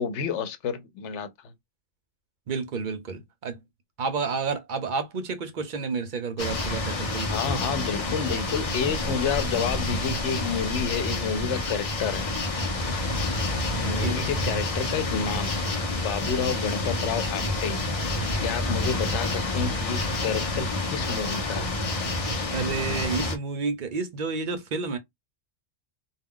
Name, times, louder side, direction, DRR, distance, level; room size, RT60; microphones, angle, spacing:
voice 1, 0.0-1.5 7.2-12.3 13.8-17.8 18.4-21.8, left 6 dB, 90° left, 0.9 m, -30 dB
voice 2, 2.5-3.6 4.0-7.3 14.0-14.1 22.5-25.0, right 4 dB, 55° right, 0.6 m, -30 dB
sound 1, 6.4-23.4, left 2 dB, 35° left, 0.7 m, -28 dB
2.3 x 2.2 x 3.6 m
omnidirectional pair, 1.2 m